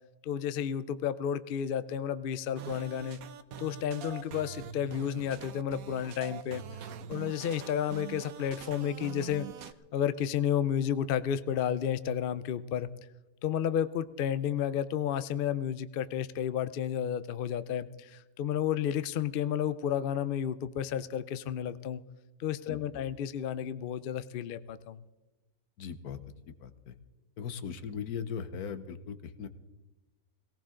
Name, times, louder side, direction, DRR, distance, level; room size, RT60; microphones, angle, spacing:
voice 1, 0.2-3.2 3.6-12.9 13.4-22.0 22.4-25.0, left 9 dB, 55° left, 14 dB, 0.6 m, -32 dB
sound 1, 2.6-9.7, right 8 dB, 75° right, 1.2 m, -43 dB
voice 2, 25.8-26.2 26.6-26.9 27.4-29.5, left 7 dB, 85° left, 11 dB, 1.4 m, -38 dB
18.5 x 18.0 x 3.8 m, 1.1 s
omnidirectional pair, 1.6 m